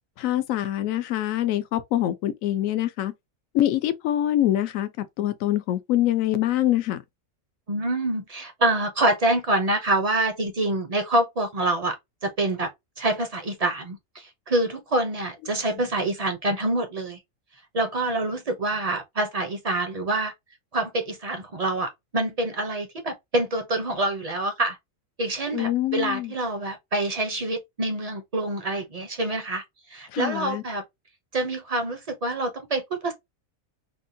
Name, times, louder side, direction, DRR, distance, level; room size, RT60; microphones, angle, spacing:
voice 1, 0.2-3.1 3.5-7.0 25.5-26.3 30.1-30.6, left 13 dB, 80° left, 1.0 m, -24 dB
voice 2, 7.7-12.0 12.2-12.7 13.0-17.2 17.7-20.3 20.7-24.8 25.2-29.6 29.9-30.8 31.3-33.1, right 2 dB, 45° right, 0.5 m, -26 dB
3.5 x 2.2 x 2.6 m
omnidirectional pair, 1.4 m